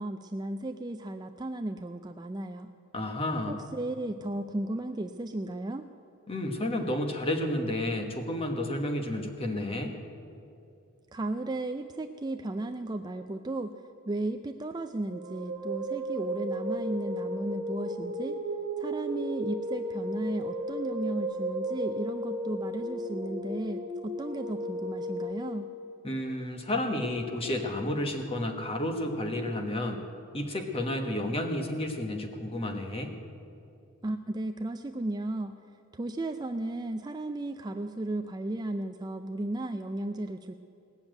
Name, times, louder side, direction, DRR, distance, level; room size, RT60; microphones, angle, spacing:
voice 1, 0.0-2.7 3.5-5.9 11.1-13.7 14.1-18.4 18.8-25.7 34.0-35.6 35.9-40.5, right 2 dB, 20° right, 6 dB, 0.3 m, -34 dB
voice 2, 2.9-3.6 6.3-10.0 26.0-30.0 30.3-33.1, left 1 dB, 25° left, 4 dB, 1.2 m, -31 dB
sound 1, 15.1-25.3, right 1 dB, 45° right, 1.7 m, -34 dB
18.0 x 7.0 x 9.0 m, 2.6 s
head